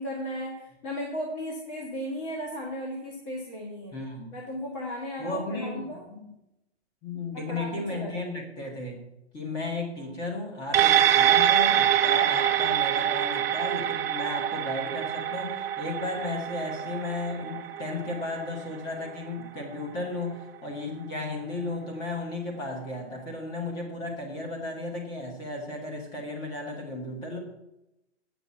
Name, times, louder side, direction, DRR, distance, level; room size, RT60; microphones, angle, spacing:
voice 1, 0.0-3.9 4.3-6.0 7.3-8.3, equal, 25° left, -2 dB, 1.7 m, -35 dB
voice 2, 3.9-4.3 5.2-6.3 7.0-9.0 9.3-27.4, left 2 dB, 10° left, 1 dB, 1.2 m, -34 dB
sound 1, 10.7-19.4 19.8-19.9, right 10 dB, 60° right, 0.6 m, -25 dB
8.6 x 6.0 x 6.9 m, 0.89 s
hypercardioid pair, 180°, 35 cm